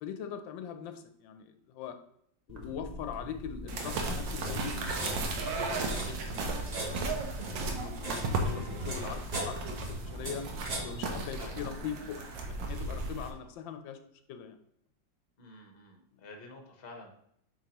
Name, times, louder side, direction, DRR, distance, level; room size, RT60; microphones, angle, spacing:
voice 1, 0.0-2.0 2.5-7.0 7.7-10.5 10.8-14.0 14.3-14.6, left 8 dB, 80° left, 8 dB, 1.3 m, -42 dB
sound 1, 2.5-11.8, right 1 dB, 40° right, 0.6 m, -40 dB
sound 2, 3.7-13.3, right 3 dB, 75° right, 1.6 m, -35 dB
voice 2, 15.4-17.1, left 2 dB, 40° left, 3 dB, 1.0 m, -49 dB
7.5 x 4.7 x 2.9 m, 0.69 s
omnidirectional pair, 2.0 m